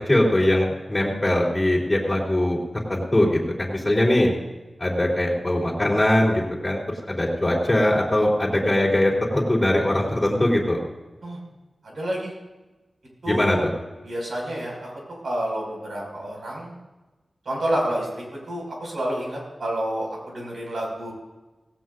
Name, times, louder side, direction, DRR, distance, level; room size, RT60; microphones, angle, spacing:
voice 1, 0.1-2.6 2.9-4.3 4.8-6.8 7.1-10.8 13.3-13.7, left 1 dB, 15° left, -4 dB, 3.5 m, -21 dB
voice 2, 11.8-12.3 13.2-13.6 14.0-14.9 15.2-16.7 17.4-21.1, right 1 dB, 80° right, -2 dB, 5.9 m, -29 dB
18.0 x 17.0 x 2.6 m, 1.1 s
wide cardioid pair, 105°, 0 cm